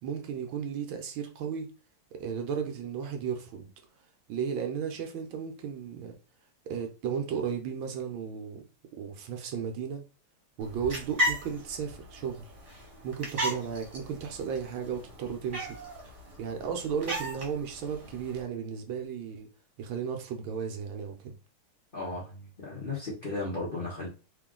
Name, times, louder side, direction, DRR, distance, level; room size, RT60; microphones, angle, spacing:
voice 1, 0.0-1.7 2.1-3.7 4.3-6.1 6.7-8.6 9.0-10.0 10.6-12.5 13.0-15.8 16.4-19.5 19.8-21.3, right 7 dB, 75° right, 1.5 m, -34 dB
sound 1, 10.6-18.4, equal, 20° right, 1.3 m, -36 dB
voice 2, 21.9-24.1, left 2 dB, 35° left, 1.0 m, -35 dB
3.8 x 2.7 x 3.7 m
omnidirectional pair, 2.3 m